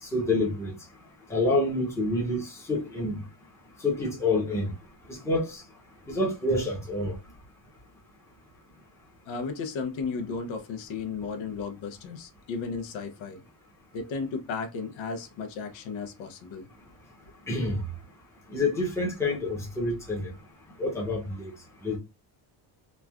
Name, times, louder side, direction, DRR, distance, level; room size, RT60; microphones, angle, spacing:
voice 1, 0.1-0.7 1.3-3.2 3.8-4.7 5.2-5.6 6.1-7.1 17.5-17.8 18.5-20.3 20.8-21.5 21.8-22.0, left 2 dB, 5° left, 0.7 m, -27 dB
voice 2, 9.3-13.4 13.9-16.7, left 4 dB, 80° left, 0.8 m, -34 dB
3.1 x 2.4 x 2.3 m
cardioid pair, 175°, 46 cm